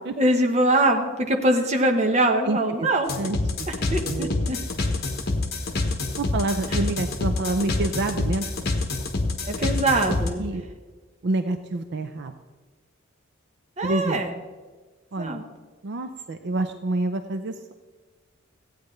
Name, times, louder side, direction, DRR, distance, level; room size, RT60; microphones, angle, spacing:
voice 1, 0.2-3.1 3.7-4.6 6.7-6.8 9.5-10.4 13.8-14.3 15.2-15.4, right 1 dB, 35° right, 3 dB, 1.1 m, -23 dB
voice 2, 2.5-2.9 3.2-3.7 4.0-4.6 6.2-8.5 10.4-10.6 11.2-12.3 13.8-14.2 15.1-15.4 15.8-17.7, right 2 dB, 55° right, 8 dB, 0.5 m, -28 dB
sound 1, 3.1-10.3, left 2 dB, 50° left, 1.2 m, -26 dB
15.5 x 9.1 x 3.2 m, 1.4 s
head